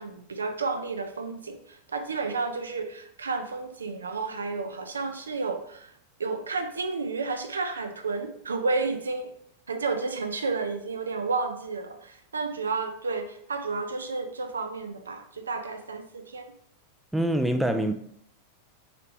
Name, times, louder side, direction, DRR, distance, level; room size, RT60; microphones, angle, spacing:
voice 1, 0.0-5.9 6.2-9.3 9.7-16.5, right 4 dB, 70° right, 0.4 m, -31 dB
voice 2, 17.1-17.9, right 1 dB, ahead, 0.3 m, -24 dB
3.7 x 3.2 x 3.3 m
figure-of-eight pair, 90°, 0 cm